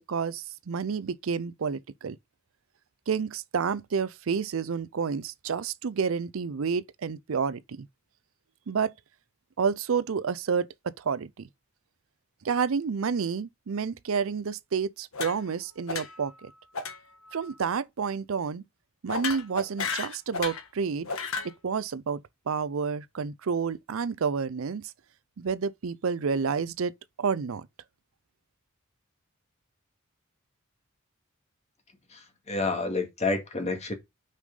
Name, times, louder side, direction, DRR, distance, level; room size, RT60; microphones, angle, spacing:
voice 1, 0.1-2.2 3.1-7.9 8.7-8.9 9.6-11.5 12.4-16.5 17.3-18.6 19.0-21.1 21.6-24.9 25.4-27.7, right 6 dB, 70° right, 0.5 m, -29 dB
sound 1, 15.1-15.6 15.9-16.3 16.7-17.0 17.3-17.5 19.1-20.7 21.0-21.5, left 5 dB, 70° left, 1.5 m, -33 dB
voice 2, 32.1-33.9, left 3 dB, 30° left, 2.0 m, -29 dB
6.2 x 5.5 x 5.2 m
head